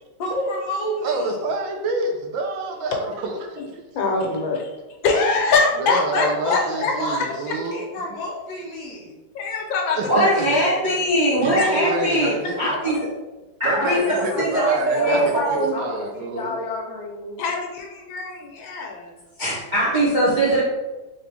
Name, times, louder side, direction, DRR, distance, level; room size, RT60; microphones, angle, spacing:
voice 1, 0.2-1.4 5.8-9.2 13.7-17.4, left 1 dB, 60° left, -2 dB, 1.3 m, -29 dB
voice 2, 1.0-3.7 5.8-7.8 10.0-10.4 11.4-12.9 13.6-16.5, right 2 dB, 80° right, 3 dB, 1.4 m, -27 dB
voice 3, 3.9-4.7 5.0-7.2 9.3-10.8 11.6-11.7 12.6-12.7 17.4-19.2, left 4 dB, 80° left, 1 dB, 1.5 m, -24 dB
voice 4, 10.1-12.3 12.6-13.0 13.6-15.8 19.4-20.6, right 1 dB, 45° right, -7 dB, 0.6 m, -21 dB
3.8 x 3.2 x 3.3 m, 1.1 s
omnidirectional pair, 2.1 m